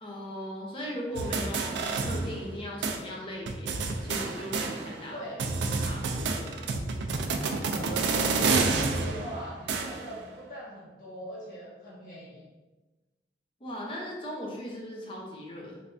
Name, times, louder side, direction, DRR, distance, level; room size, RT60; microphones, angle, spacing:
voice 1, 0.0-5.2 5.8-6.6 13.6-15.8, equal, 30° left, -2 dB, 0.7 m, -38 dB
sound 1, 1.2-2.6 2.8-3.0 3.5-5.1 5.4-10.2, right 4 dB, 85° right, 0.4 m, -29 dB
voice 2, 5.1-5.4 7.7-12.4, right 1 dB, 50° left, -9 dB, 1.5 m, -41 dB
3.3 x 3.2 x 2.6 m, 1.2 s
head